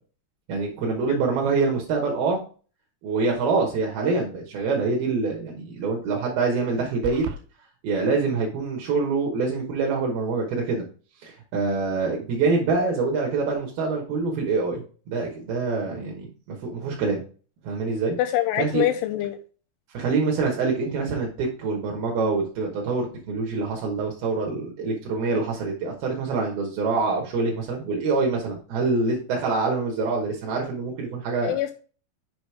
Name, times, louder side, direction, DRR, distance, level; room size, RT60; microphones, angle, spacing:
voice 1, 0.5-2.4 3.0-7.3 7.8-10.8 11.2-16.3 16.6-17.2 17.6-18.2 18.6-18.8 19.9-31.5, right 4 dB, 65° right, 2.5 m, -25 dB
sound 1, 7.0-7.4, right 5 dB, 85° right, 2.9 m, -33 dB
voice 2, 18.2-19.4 31.4-31.7, left 13 dB, 85° left, 2.7 m, -24 dB
6.9 x 5.1 x 4.8 m
omnidirectional pair, 5.9 m